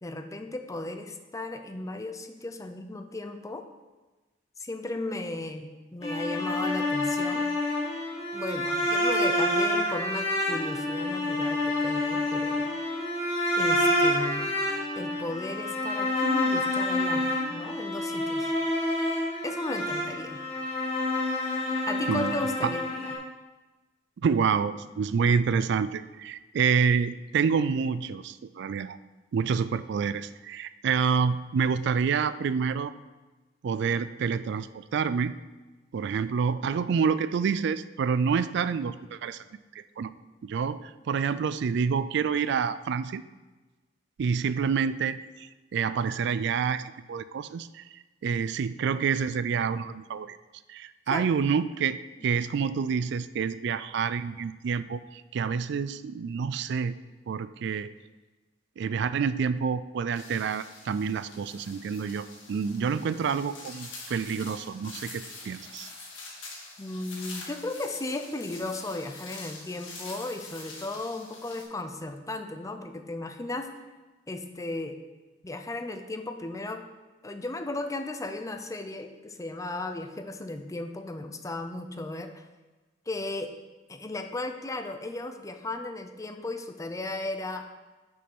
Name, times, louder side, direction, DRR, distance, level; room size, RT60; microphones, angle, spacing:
voice 1, 0.0-3.7 4.6-7.5 8.3-12.7 13.6-14.6 15.0-18.5 19.4-20.4 21.9-23.1 51.1-51.3 66.8-73.7 74.3-75.0 75.4-76.8 77.2-82.5 83.1-83.5 83.9-87.7, left 2 dB, 15° left, 6 dB, 0.5 m, -35 dB
sound 1, 6.0-23.1, left 1 dB, 30° left, 1.6 m, -28 dB
voice 2, 24.2-29.0 29.3-32.9 33.6-35.3 35.9-39.4 40.0-40.1 40.4-43.2 44.2-47.9 48.2-50.4 50.7-56.9 57.3-57.9 58.8-65.9, right 6 dB, 65° right, 15 dB, 0.3 m, -28 dB
sound 2, 60.1-71.6, left 3 dB, 85° left, 2.1 m, -45 dB
6.5 x 5.4 x 6.1 m, 1.2 s
head